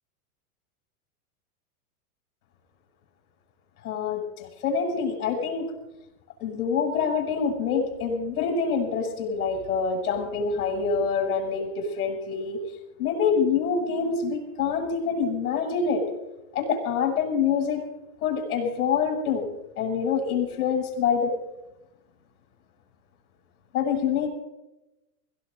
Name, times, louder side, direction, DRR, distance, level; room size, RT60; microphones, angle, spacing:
voice 1, 3.8-5.7 6.4-12.6 13.0-16.0 16.6-17.8 18.2-19.5 19.8-21.3 23.7-24.3, left 6 dB, 75° left, 1 dB, 7.0 m, -26 dB
24.5 x 17.0 x 2.7 m, 0.95 s
supercardioid pair, 135°, 45 cm